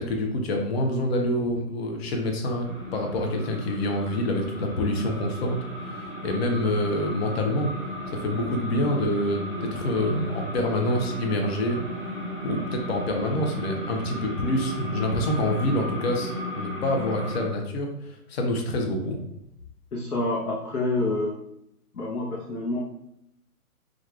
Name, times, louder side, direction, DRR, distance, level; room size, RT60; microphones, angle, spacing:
voice 1, 0.0-5.6 5.9-7.7 8.1-11.8 12.4-19.2, left 1 dB, 45° left, 2 dB, 0.6 m, -27 dB
sound 1, 2.6-17.4, equal, 5° left, 1.0 m, -35 dB
voice 2, 19.9-21.4 21.9-22.8, left 2 dB, 80° left, -4 dB, 0.8 m, -27 dB
3.3 x 2.4 x 2.3 m, 0.78 s
figure-of-eight pair, 130°, 45 cm